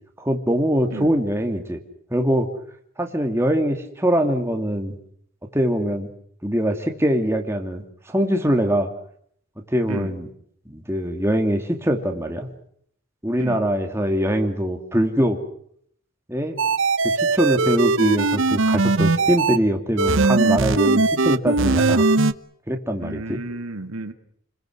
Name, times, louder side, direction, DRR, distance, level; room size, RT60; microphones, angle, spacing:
voice 1, 0.2-1.8 2.1-2.5 3.0-5.0 5.5-6.1 6.4-8.9 9.7-10.3 10.7-12.5 13.2-15.4 16.3-16.6 17.0-22.0 22.7-23.4, equal, 10° right, 3 dB, 2.6 m, -23 dB
sound 1, 16.6-19.6 20.0-22.3, right 3 dB, 65° right, 0.9 m, -19 dB
voice 2, 23.0-24.1, right 2 dB, 90° right, 7 dB, 2.3 m, -33 dB
30.0 x 21.5 x 6.3 m, 0.67 s
head